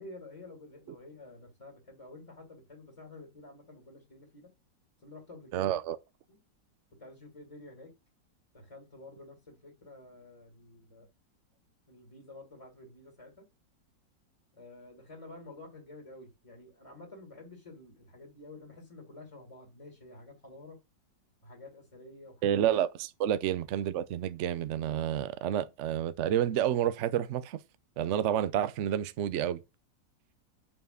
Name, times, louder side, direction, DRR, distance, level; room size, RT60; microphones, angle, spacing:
voice 1, 0.0-4.5 5.0-5.8 6.3-6.4 7.0-7.9 8.5-11.1 11.9-13.5 14.5-20.8 21.4-22.6, left 2 dB, 20° left, 2.1 m, -50 dB
voice 2, 5.5-6.0 22.4-27.6 28.0-29.6, right 10 dB, 80° right, 0.6 m, -29 dB
5.7 x 4.8 x 6.5 m
omnidirectional pair, 1.9 m